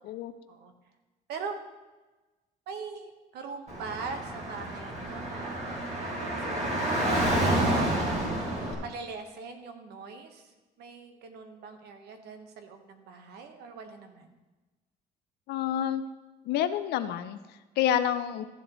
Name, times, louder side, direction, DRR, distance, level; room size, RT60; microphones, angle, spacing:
voice 1, 2.7-5.8 6.2-6.7 6.9-10.4 10.8-14.3, right 4 dB, 75° right, 6 dB, 1.3 m, -42 dB
Car / Traffic noise roadway noise, 3.7-8.7, right 1 dB, 40° right, 2.5 m, -29 dB
voice 2, 15.5-16.0 16.4-18.5, left 10 dB, 75° left, 11 dB, 0.5 m, -28 dB
14.0 x 7.7 x 3.1 m, 1.2 s
cardioid pair, 110°, 17 cm